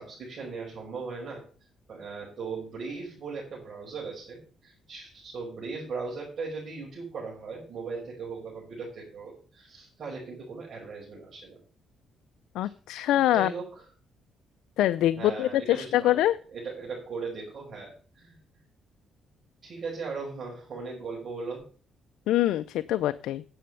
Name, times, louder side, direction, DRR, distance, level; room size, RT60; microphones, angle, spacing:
voice 1, 0.0-1.4 1.9-11.6 13.0-13.7 15.2-16.2 16.5-18.4 19.6-21.6, right 4 dB, 55° right, -4 dB, 5.6 m, -38 dB
voice 2, 12.5-13.5 14.8-16.4 22.3-23.4, left 13 dB, 85° left, 13 dB, 0.4 m, -24 dB
10.0 x 7.8 x 6.8 m, 0.40 s
cardioid pair, 90°, 0 cm